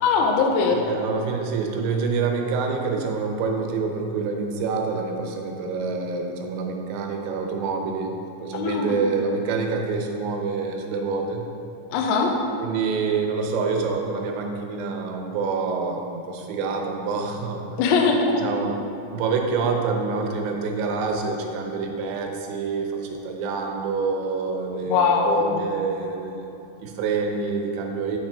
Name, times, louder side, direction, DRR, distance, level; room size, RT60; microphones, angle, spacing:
voice 1, 0.0-0.8 8.5-9.2 11.9-12.4 17.8-18.4 24.8-25.7, left 4 dB, 90° left, 2 dB, 2.2 m, -21 dB
voice 2, 0.7-8.1 8.4-11.5 12.6-17.6 18.4-18.8 19.1-26.4 26.8-28.2, right 4 dB, 90° right, 3 dB, 3.0 m, -27 dB
9.4 x 5.8 x 3.4 m, 2.9 s
omnidirectional pair, 5.0 m